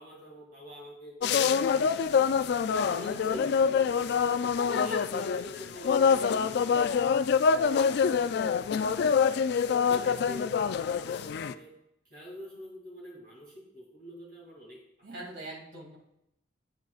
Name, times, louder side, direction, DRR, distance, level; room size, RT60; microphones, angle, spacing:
voice 1, 0.0-2.3 2.7-4.2 4.7-7.1 9.9-11.7 12.0-14.8, equal, 50° right, -3 dB, 2.4 m, -45 dB
sound 1, 1.2-11.5, left 6 dB, 60° left, 0.3 m, -26 dB
voice 2, 15.0-16.0, right 2 dB, 75° right, -2 dB, 2.3 m, -44 dB
9.2 x 7.4 x 2.4 m, 0.81 s
head